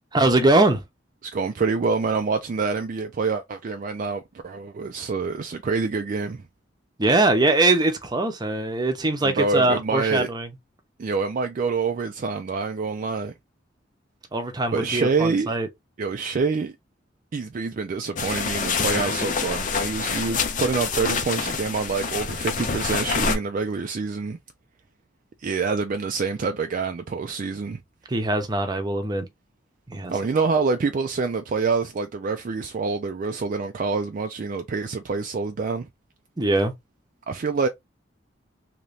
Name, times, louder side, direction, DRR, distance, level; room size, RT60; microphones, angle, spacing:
voice 1, 0.1-0.8 7.0-10.5 14.3-15.7 28.1-29.3 29.9-30.1 36.4-36.7, right 2 dB, 25° right, 0.7 m, -22 dB
voice 2, 1.2-6.4 9.2-10.3 11.0-13.3 14.7-15.6 16.0-16.8 17.3-24.4 25.4-27.8 30.1-35.9 37.3-37.7, right 4 dB, 45° right, 0.4 m, -26 dB
sound 1, 18.2-23.4, left 5 dB, 45° left, 0.6 m, -26 dB
2.9 x 2.6 x 3.3 m
head